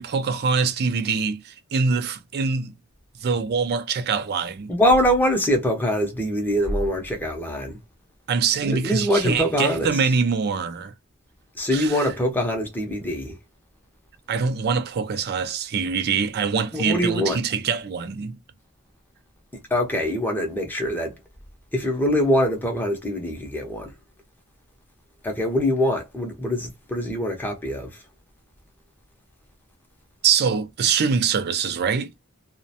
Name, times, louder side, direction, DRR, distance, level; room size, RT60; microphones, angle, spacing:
voice 1, 0.0-2.7 3.2-4.7 8.3-10.9 11.7-12.1 14.3-18.4 30.2-32.1, right 5 dB, 50° right, 0.4 m, -24 dB
voice 2, 4.7-7.8 8.6-9.9 11.6-13.4 16.7-17.4 19.7-21.2 21.7-23.9 25.2-28.0, equal, 10° left, 0.6 m, -23 dB
2.4 x 2.1 x 2.7 m
head